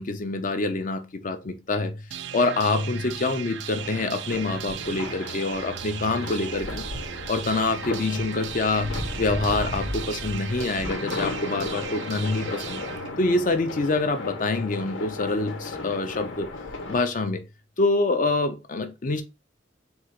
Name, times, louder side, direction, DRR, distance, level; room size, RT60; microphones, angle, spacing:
voice 1, 0.0-2.0 2.3-6.9 7.3-12.8 13.2-16.5 16.9-17.4 17.8-19.2, left 3 dB, 45° left, 0.5 m, -26 dB
sound 1, 2.1-14.1, right 9 dB, 65° right, 0.3 m, -37 dB
sound 2, 3.8-17.0, left 2 dB, 80° left, 0.9 m, -35 dB
sound 3, 7.5-13.7, right 3 dB, 90° right, 0.7 m, -46 dB
3.8 x 2.3 x 4.4 m
head